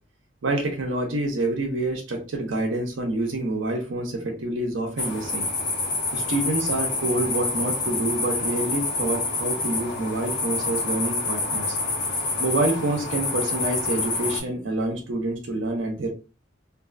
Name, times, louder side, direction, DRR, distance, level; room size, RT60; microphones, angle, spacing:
voice 1, 0.4-5.5 6.1-11.8 12.4-16.1, right 2 dB, 90° right, 2 dB, 0.7 m, -27 dB
sound 1, 5.0-14.4, left 3 dB, 65° left, 1.0 m, -27 dB
2.6 x 2.3 x 2.5 m, 0.33 s
head